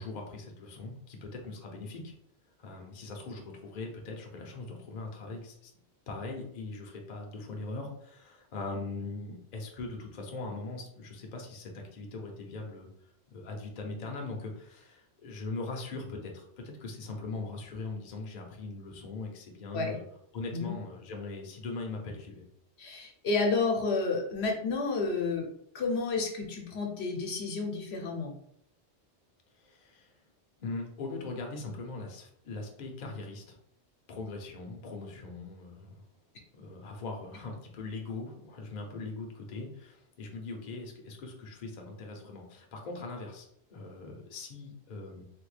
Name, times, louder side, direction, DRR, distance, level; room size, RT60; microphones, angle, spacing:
voice 1, 0.0-2.1 2.6-5.7 6.1-12.9 13.3-20.0 20.3-22.5 29.5-30.2 30.6-33.6 34.1-36.0 36.5-45.2, left 3 dB, 50° left, 1 dB, 0.6 m, -40 dB
voice 2, 22.8-25.5 25.7-28.3, left 3 dB, 75° left, 1 dB, 0.9 m, -30 dB
3.3 x 2.2 x 3.2 m, 0.71 s
omnidirectional pair, 1.1 m